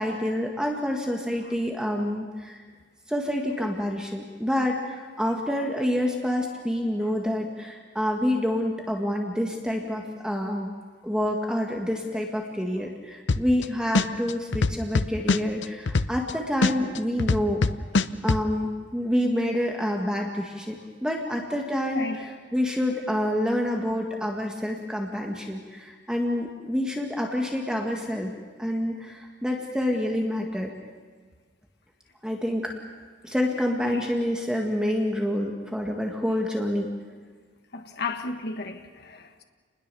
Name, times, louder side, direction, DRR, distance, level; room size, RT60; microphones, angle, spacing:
voice 1, 0.0-2.6 3.1-10.7 11.0-17.6 18.2-28.3 28.6-30.7 32.2-32.7 33.2-36.9, left 1 dB, 5° right, 1.9 m, -27 dB
sound 1, 13.3-13.6 13.9-16.3 16.6-18.4, left 3 dB, 80° left, 0.7 m, -22 dB
voice 2, 37.7-39.4, left 3 dB, 60° left, 1.5 m, -33 dB
28.5 x 21.0 x 7.0 m
head